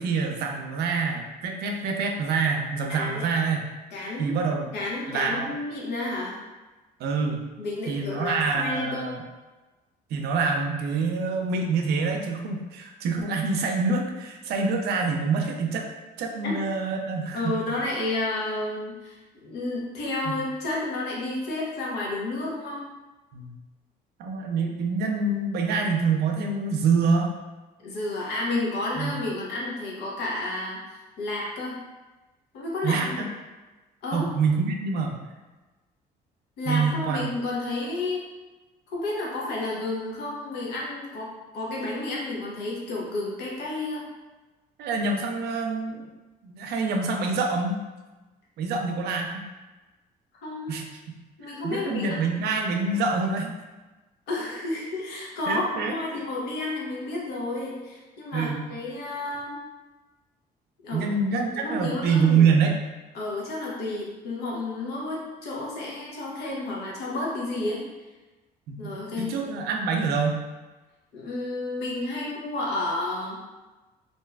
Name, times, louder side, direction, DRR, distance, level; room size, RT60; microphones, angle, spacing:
voice 1, 0.0-3.6 4.2-4.7 5.1-5.5 7.0-7.4 7.9-9.2 10.1-15.9 16.2-17.4 20.3-20.4 23.3-23.5 24.2-27.3 29.0-29.1 32.8-33.3 34.1-35.2 36.7-37.3 44.8-46.1 46.4-47.8 48.6-49.4 50.7-50.8 51.6-53.5 55.5-55.9 58.3-58.7 60.9-62.7 68.7-70.4, right 4 dB, 70° right, 3 dB, 0.5 m, -26 dB
voice 2, 2.9-3.3 3.9-4.3 4.7-6.4 7.6-9.2 16.4-16.5 17.3-22.8 27.8-30.8 31.2-31.8 32.5-33.2 34.0-34.3 36.6-38.2 38.9-44.1 50.4-50.8 51.4-52.4 54.3-59.6 60.8-61.1 61.5-62.5 63.1-67.8 68.8-69.3 71.1-73.4, left 2 dB, 80° left, -3 dB, 0.8 m, -31 dB
2.6 x 2.2 x 3.3 m, 1.2 s
cardioid pair, 110°, 17 cm